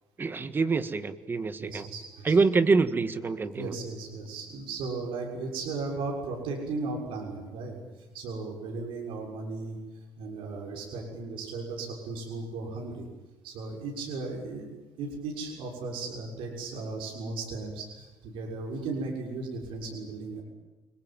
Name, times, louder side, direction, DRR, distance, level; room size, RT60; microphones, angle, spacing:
voice 1, 0.2-1.9 2.3-3.7, right 4 dB, 25° right, 11 dB, 1.6 m, -25 dB
voice 2, 1.6-2.4 3.5-9.8 10.2-13.0 13.4-14.7 15.0-20.4, right 3 dB, 80° right, 0 dB, 6.6 m, -36 dB
29.5 x 21.0 x 9.1 m, 1.2 s
cardioid pair, 135°, 9 cm